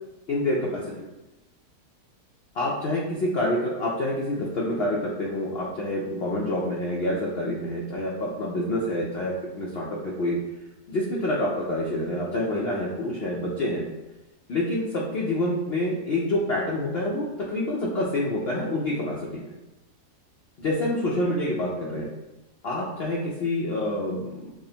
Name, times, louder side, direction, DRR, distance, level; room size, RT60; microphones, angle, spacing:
voice 1, 0.3-1.0 2.5-10.4 10.9-13.8 14.5-19.4 20.6-22.1 22.6-24.5, left 1 dB, 80° left, -4 dB, 0.5 m, -27 dB
5.9 x 2.0 x 2.8 m, 1.0 s
omnidirectional pair, 1.7 m